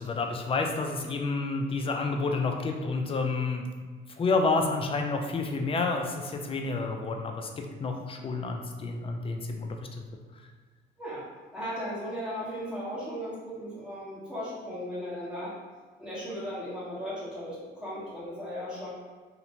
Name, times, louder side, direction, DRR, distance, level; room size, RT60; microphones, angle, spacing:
voice 1, 0.0-3.7 4.2-9.8, left 3 dB, 30° left, 3 dB, 0.4 m, -29 dB
voice 2, 11.5-15.5 16.0-18.9, equal, 5° right, -9 dB, 1.2 m, -36 dB
2.5 x 2.1 x 2.8 m, 1.4 s
cardioid pair, 90°, 20 cm